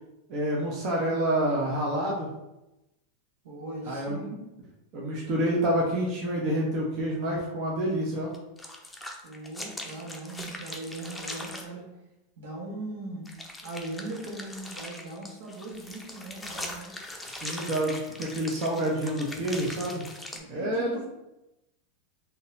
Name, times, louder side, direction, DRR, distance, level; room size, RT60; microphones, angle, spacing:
voice 1, 0.3-2.3 3.9-4.2 4.9-8.3 9.9-10.0 17.3-20.0 20.5-20.9, right 1 dB, 50° right, -3 dB, 0.9 m, -28 dB
voice 2, 3.4-4.4 9.2-11.8 12.4-13.2 13.6-16.9 20.3-21.1, right 2 dB, 80° right, -3 dB, 1.3 m, -39 dB
sound 1, 8.3-11.7 13.3-20.4, left 1 dB, 10° left, 0.6 m, -41 dB
3.9 x 2.8 x 2.6 m, 0.92 s
hypercardioid pair, 105°, 0 cm